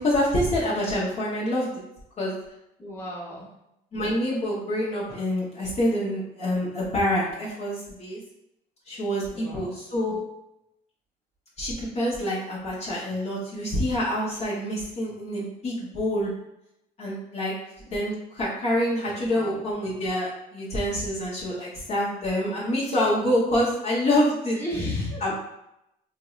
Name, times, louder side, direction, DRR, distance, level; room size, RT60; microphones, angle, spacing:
voice 1, 0.0-1.7 2.2-2.3 3.9-8.2 8.9-10.2 11.6-16.3 17.0-17.5 17.9-24.6 25.2-25.3, left 1 dB, 40° left, -6 dB, 0.9 m, -26 dB
voice 2, 2.8-3.5 9.3-9.6 19.2-19.6 24.6-25.3, left 1 dB, 15° left, -6 dB, 1.1 m, -33 dB
3.1 x 2.6 x 2.4 m, 0.83 s
cardioid pair, 110°, 17 cm